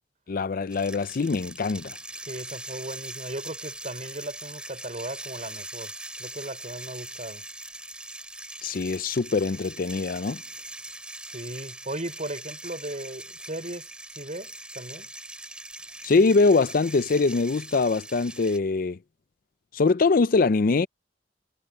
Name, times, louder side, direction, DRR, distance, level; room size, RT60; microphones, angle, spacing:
voice 1, 0.3-2.0 8.6-10.4 16.0-19.0 19.7-20.9, left 3 dB, 50° left, 0.5 m, -23 dB
sound 1, 0.7-18.6, right 1 dB, 5° right, 7.9 m, -41 dB
voice 2, 2.2-5.9 6.2-7.4 11.2-15.1, right 1 dB, 45° right, 5.9 m, -37 dB
head